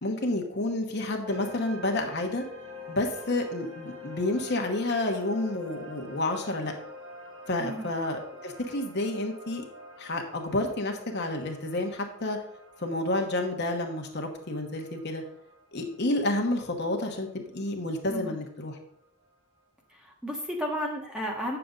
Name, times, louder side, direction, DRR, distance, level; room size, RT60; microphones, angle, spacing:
voice 1, 0.0-2.4 2.9-6.7 7.5-9.6 10.0-12.4 12.8-15.2 15.7-18.8, left 2 dB, 50° left, 3 dB, 1.1 m, -30 dB
sound 1, 1.3-18.2, left 2 dB, 55° right, 2.3 m, -47 dB
voice 2, 20.0-21.6, equal, 5° right, 0 dB, 1.1 m, -33 dB
8.4 x 6.9 x 3.8 m, 0.69 s
head